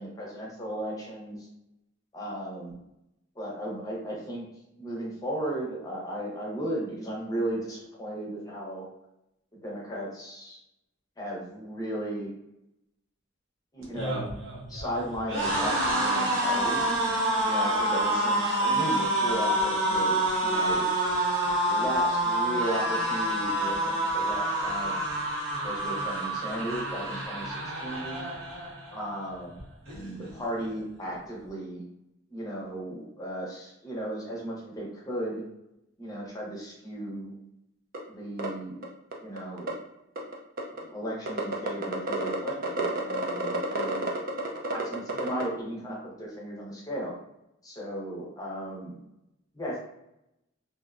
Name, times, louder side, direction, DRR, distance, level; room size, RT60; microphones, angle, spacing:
voice 1, 0.0-1.5 2.1-2.8 3.4-4.5 4.8-8.9 9.6-10.6 11.2-12.3 13.7-14.4 14.7-16.9 17.4-20.9 21.7-25.0 25.6-28.2 28.9-29.5 29.9-31.8 32.3-35.4 36.0-37.3 38.1-38.9 39.2-39.7 40.8-44.1 44.7-47.1 47.6-49.0 49.5-49.8, right 1 dB, 20° left, -4 dB, 0.6 m, -35 dB
sound 1, 13.8-29.0 29.4-29.6 29.9-30.7, right 1 dB, 65° right, 0.8 m, -27 dB
sound 2, 37.9-38.0 38.4-38.5 38.8-38.9 39.1-39.7 40.2-40.8 41.3-45.4, right 2 dB, 45° right, 0.4 m, -29 dB
2.6 x 2.0 x 2.4 m, 0.85 s
head